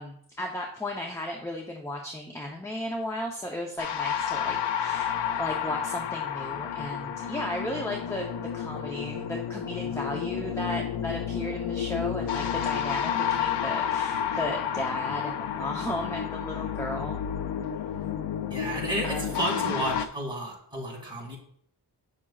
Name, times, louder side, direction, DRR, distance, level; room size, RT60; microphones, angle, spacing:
voice 1, 0.0-17.2 19.0-19.3, left 1 dB, 5° left, 1 dB, 0.7 m, -35 dB
sound 1, 3.8-20.1, left 8 dB, 85° left, 0.6 m, -31 dB
voice 2, 18.5-21.4, right 1 dB, 10° right, -3 dB, 2.3 m, -32 dB
8.6 x 6.1 x 2.3 m, 0.64 s
wide cardioid pair, 125°, 41 cm